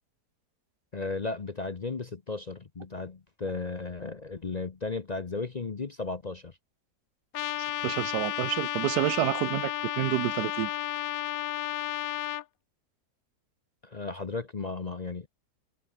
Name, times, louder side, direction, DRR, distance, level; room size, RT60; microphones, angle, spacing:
voice 1, 0.9-6.6 13.8-15.3, left 3 dB, 35° left, 0.7 m, -35 dB
Trumpet, 7.3-12.4, left 14 dB, 70° left, 1.0 m, -32 dB
voice 2, 7.8-10.7, right 16 dB, 85° right, 1.1 m, -29 dB
omnidirectional pair, 1.7 m